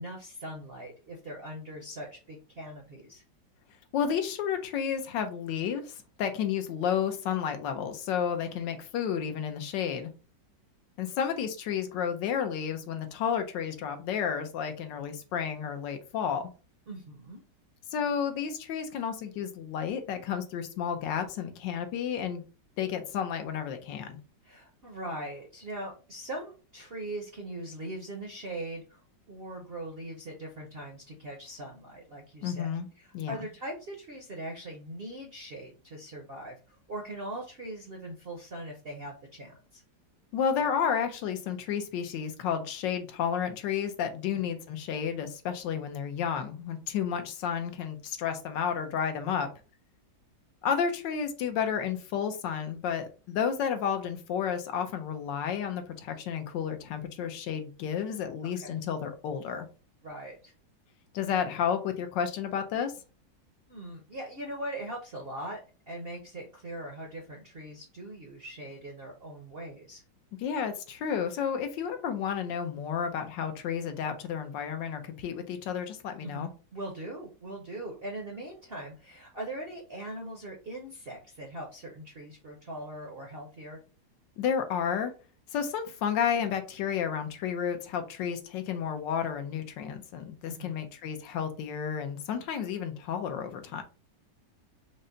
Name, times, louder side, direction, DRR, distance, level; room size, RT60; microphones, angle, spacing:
voice 1, 0.0-3.2 8.6-8.7 16.9-17.4 24.4-29.0 29.3-32.7 33.0-39.8 44.3-44.4 58.4-58.8 60.0-60.5 63.7-65.6 65.9-70.0 76.2-83.8 90.5-90.7, right 1 dB, 55° right, 1 dB, 0.6 m, -41 dB
voice 2, 3.9-10.1 11.0-16.5 17.9-22.4 22.8-24.2 32.4-32.9 33.1-33.3 40.3-49.5 50.6-59.7 61.1-62.9 70.4-76.5 84.4-85.1 85.5-93.8, left 7 dB, 80° left, 7 dB, 1.4 m, -31 dB
5.3 x 2.1 x 3.8 m, 0.34 s
omnidirectional pair, 2.0 m